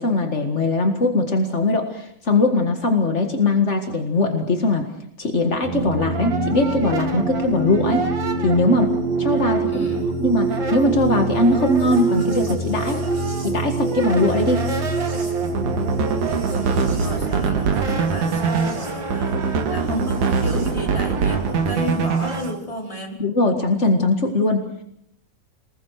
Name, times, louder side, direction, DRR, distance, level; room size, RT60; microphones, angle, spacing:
voice 1, 0.0-4.9 5.2-8.0 8.4-8.9 9.2-9.9 10.2-13.0 13.4-14.6 17.3-17.5 23.2-24.6, left 2 dB, 40° left, 4 dB, 1.0 m, -20 dB
Brass instrument, 5.6-10.0 10.3-22.5, right 4 dB, 35° right, 2.7 m, -33 dB
sound 1, 5.6-20.7 21.9-22.5, right 3 dB, 75° right, 7.3 m, -26 dB
voice 2, 9.7-10.2 16.6-23.2, equal, 10° left, 0 dB, 4.0 m, -32 dB
sound 2, 15.4-22.5, right 5 dB, 60° right, 2.9 m, -23 dB
27.5 x 20.5 x 6.5 m, 0.71 s
omnidirectional pair, 4.2 m